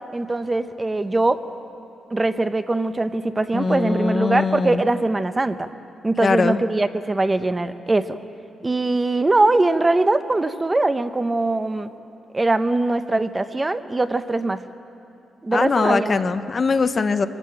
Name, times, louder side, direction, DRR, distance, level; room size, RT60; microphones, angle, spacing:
voice 1, 0.1-1.4 2.1-5.7 6.0-8.2 8.6-11.9 12.3-14.6 15.4-16.2, right 2 dB, 15° right, 10 dB, 0.5 m, -21 dB
voice 2, 3.5-4.8 6.2-6.6 15.5-17.3, left 4 dB, 30° left, 11 dB, 0.6 m, -21 dB
24.5 x 15.0 x 8.8 m, 2.8 s
wide cardioid pair, 170°, 0 cm